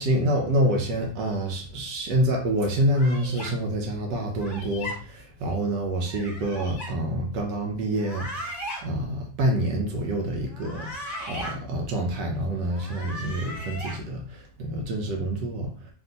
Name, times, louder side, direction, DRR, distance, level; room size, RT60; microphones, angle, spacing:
voice 1, 0.0-8.5 8.8-10.9 11.2-15.7, right 1 dB, 85° right, 0 dB, 1.4 m, -27 dB
sound 1, 2.9-3.5 4.4-5.0 6.1-6.9 7.9-8.8 10.5-11.5 12.7-14.0, equal, 30° left, 0.8 m, -37 dB
3.5 x 2.6 x 3.9 m, 0.42 s
omnidirectional pair, 1.8 m